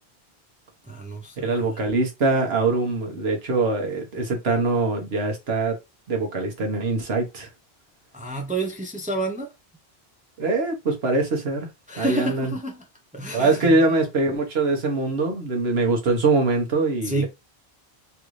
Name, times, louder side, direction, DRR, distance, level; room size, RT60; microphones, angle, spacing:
voice 1, 0.9-1.8 8.1-9.5 11.9-12.8 13.1-13.8 17.0-17.3, right 2 dB, 10° right, 0.5 m, -29 dB
voice 2, 1.4-5.8 6.1-7.5 10.4-11.7 12.0-12.5 13.3-17.3, right 3 dB, 75° right, 1.3 m, -23 dB
3.3 x 2.5 x 3.1 m
omnidirectional pair, 1.0 m